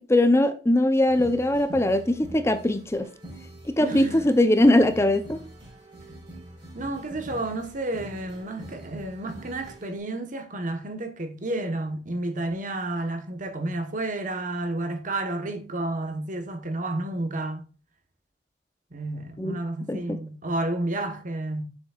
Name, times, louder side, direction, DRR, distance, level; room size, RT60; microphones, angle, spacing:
voice 1, 0.1-3.1 3.8-5.4 19.4-19.6 19.9-20.2, left 1 dB, 15° left, 0.6 m, -21 dB
sound 1, 1.1-10.0, right 1 dB, 30° right, 3.8 m, -44 dB
voice 2, 3.8-4.2 6.7-17.7 18.9-21.7, right 2 dB, 50° right, 1.2 m, -31 dB
7.2 x 7.0 x 2.4 m
head